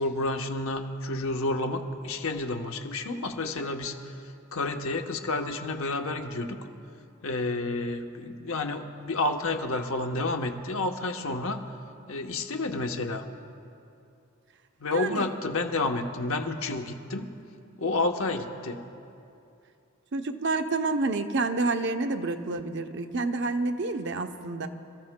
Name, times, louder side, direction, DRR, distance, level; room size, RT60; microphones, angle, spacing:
voice 1, 0.0-4.2 4.5-6.6 7.2-11.6 12.1-13.3 14.8-17.3 17.8-18.8, left 2 dB, 65° left, 4 dB, 0.9 m, -30 dB
voice 2, 14.9-15.3 20.1-24.7, right 3 dB, 55° right, 7 dB, 0.7 m, -29 dB
27.0 x 14.5 x 2.2 m, 2.7 s
head